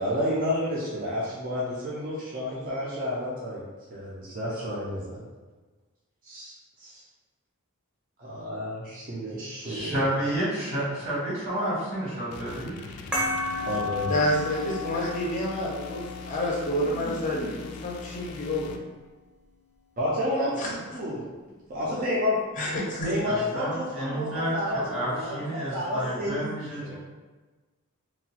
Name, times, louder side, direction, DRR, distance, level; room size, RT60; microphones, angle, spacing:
voice 1, 0.0-3.6 3.9-5.2 6.2-7.0 8.2-10.2 13.6-14.4 20.0-22.4 23.0-27.0, left 1 dB, 40° right, -6 dB, 0.5 m, -31 dB
voice 2, 9.6-12.8 17.0-17.5 23.2-27.0, right 1 dB, 80° right, -8 dB, 1.4 m, -30 dB
sound 1, 12.3-18.8, left 5 dB, 85° left, 0.3 m, -41 dB
sound 2, 13.1-18.2, left 2 dB, 5° right, 0.7 m, -34 dB
voice 3, 14.1-16.0 16.3-18.7 20.6-20.7 22.6-23.1, left 1 dB, 35° left, -3 dB, 0.5 m, -28 dB
2.9 x 2.2 x 2.8 m, 1.3 s
head